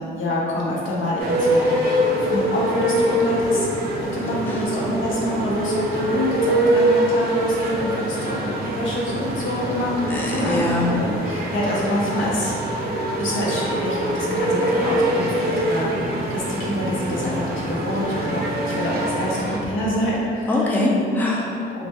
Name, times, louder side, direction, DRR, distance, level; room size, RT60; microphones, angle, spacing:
voice 1, 0.0-1.7 2.2-3.7 4.1-10.6 10.9-12.6 13.2-20.7 21.7-21.9, left 1 dB, 80° left, -5 dB, 0.6 m, -26 dB
sound 1, 1.2-19.6, right 1 dB, 50° right, 0.4 m, -24 dB
voice 2, 10.1-11.0 20.4-21.8, left 2 dB, 10° left, -4 dB, 0.4 m, -23 dB
2.1 x 2.1 x 2.8 m, 2.4 s
cardioid pair, 90°, 20 cm